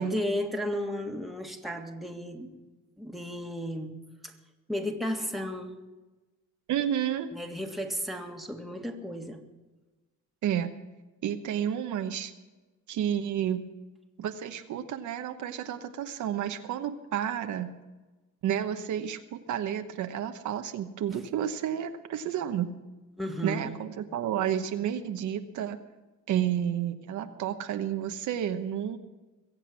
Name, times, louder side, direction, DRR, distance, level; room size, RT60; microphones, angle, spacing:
voice 1, 0.0-2.6 3.0-3.9 4.2-4.3 4.7-5.7 7.3-9.4 23.2-23.7, equal, ahead, 2 dB, 2.0 m, -34 dB
voice 2, 6.7-7.3 10.4-10.7 11.2-12.3 12.9-13.6 14.2-17.7 18.4-22.7 23.4-25.8 26.3-29.0, right 10 dB, 75° right, 7 dB, 1.0 m, -31 dB
22.5 x 7.9 x 6.2 m, 1.2 s
cardioid pair, 90°, 30 cm